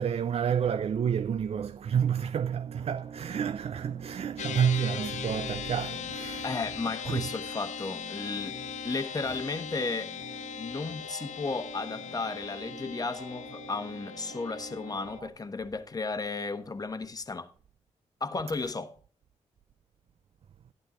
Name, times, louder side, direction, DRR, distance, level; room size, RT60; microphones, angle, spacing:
voice 1, 0.0-6.5 7.1-7.3, right 8 dB, 55° right, 0.4 m, -29 dB
sound 1, 2.7-15.3, right 6 dB, 70° right, 1.6 m, -46 dB
sound 2, 4.4-15.2, left 10 dB, 70° left, 0.4 m, -40 dB
voice 2, 6.4-10.1 10.6-17.5 18.2-18.9, left 3 dB, 30° left, 1.1 m, -34 dB
12.0 x 11.0 x 3.0 m
cardioid pair, 80°, 13 cm